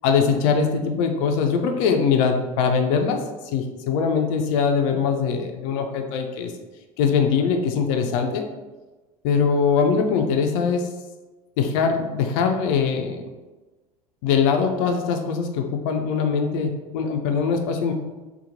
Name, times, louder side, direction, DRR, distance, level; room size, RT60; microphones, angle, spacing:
voice 1, 0.0-3.2 3.5-6.5 7.0-8.5 9.2-10.8 11.6-13.2 14.2-17.9, left 6 dB, 55° left, 4 dB, 0.4 m, -22 dB
2.8 x 2.1 x 2.6 m, 1.2 s
figure-of-eight pair, 70°, 20 cm